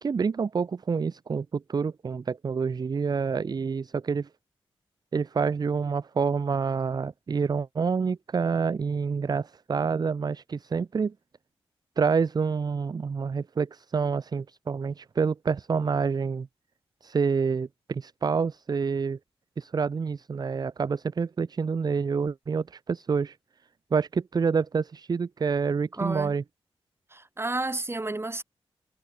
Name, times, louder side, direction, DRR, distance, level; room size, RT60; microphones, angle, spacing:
voice 1, 0.0-4.3 5.1-11.1 12.0-16.5 17.0-19.2 19.6-23.4 23.9-26.4, right 5 dB, 40° right, 0.5 m, -27 dB
voice 2, 26.0-26.4 27.1-28.4, right 2 dB, 25° right, 3.5 m, -31 dB
cardioid pair, 75°, 10 cm